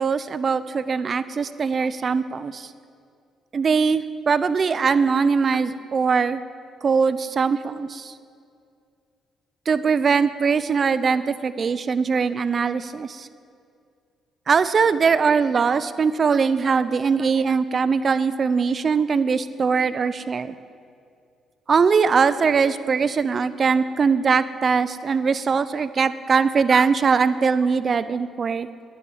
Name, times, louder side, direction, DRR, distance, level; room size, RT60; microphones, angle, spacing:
voice 1, 0.0-2.7 3.5-6.4 6.8-8.1 9.7-13.3 14.5-20.5 21.7-28.7, right 5 dB, 45° right, 14 dB, 0.7 m, -21 dB
11.5 x 10.5 x 9.9 m, 2.3 s
cardioid pair, 90°, 0 cm